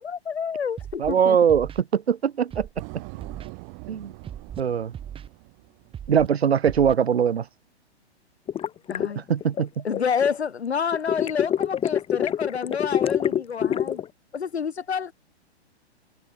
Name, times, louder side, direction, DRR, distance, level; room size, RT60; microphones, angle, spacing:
voice 1, 0.0-1.4 8.9-9.2 9.8-14.0 14.3-15.1, left 6 dB, 75° left, 2.8 m, -28 dB
Scratching (performance technique), 0.8-1.1 1.5-1.8 2.5-2.8 3.2-3.5 4.2-4.6 4.9-5.3 5.9-6.3 6.6-6.9, right 9 dB, 15° right, 2.4 m, -38 dB
voice 2, 1.0-2.7 3.9-4.1 4.6-4.9 6.1-7.4 9.3-9.8, right 8 dB, 70° right, 2.6 m, -21 dB
sound 1, 2.8-6.5, right 40 dB or more, 35° right, 5.7 m, -43 dB
sound 2, 8.5-10.3 10.9-14.1, left 9 dB, 15° left, 2.7 m, -25 dB
open air
figure-of-eight pair, 125°, 33 cm